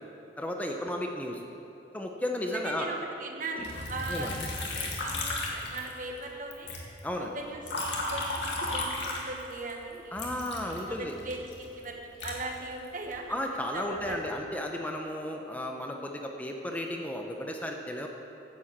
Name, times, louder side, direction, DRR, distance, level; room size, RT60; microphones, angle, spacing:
voice 1, 0.4-1.4 1.9-2.9 3.5-3.7 4.1-4.4 7.0-7.3 10.1-11.1 13.3-18.1, left 1 dB, 10° left, 2 dB, 0.7 m, -34 dB
voice 2, 2.5-6.8 7.2-10.2 11.2-11.4 11.7-13.4 13.7-14.6, right 2 dB, 50° right, 2 dB, 1.3 m, -39 dB
Liquid, 3.6-6.2 6.5-9.7 10.1-13.2 13.7-14.3, left 2 dB, 85° left, 2.0 m, -35 dB
10.0 x 7.6 x 7.4 m, 2.9 s
head